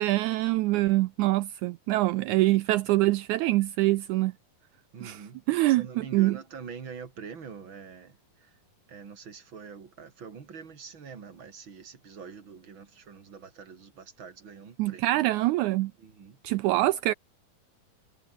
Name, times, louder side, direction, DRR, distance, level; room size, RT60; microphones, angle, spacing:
voice 1, 0.0-4.3 5.0-5.2 5.5-6.4 14.8-15.9 16.4-17.1, right 17 dB, 85° right, 1.8 m, -24 dB
voice 2, 4.9-8.6 8.9-15.5 16.0-16.4, right 6 dB, 40° right, 2.9 m, -45 dB
omnidirectional pair, 3.9 m